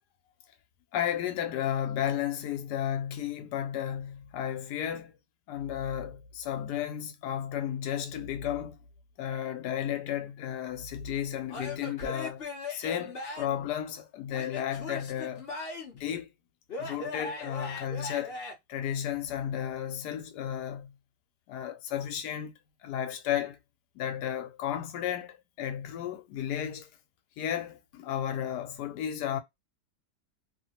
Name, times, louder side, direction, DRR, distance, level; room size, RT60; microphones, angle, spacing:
voice 1, 0.9-5.1 5.5-8.8 9.2-15.5 15.9-16.3 16.8-18.4 18.7-20.9 21.5-22.5 22.8-23.6 23.9-26.9 27.4-29.4, left 10 dB, 80° left, 1.2 m, -33 dB
Male speech man speaking / Yell / Laughter, 11.5-13.6 14.3-16.0 16.7-18.5, left 3 dB, 50° left, 0.8 m, -39 dB
3.0 x 2.1 x 2.8 m
omnidirectional pair, 1.8 m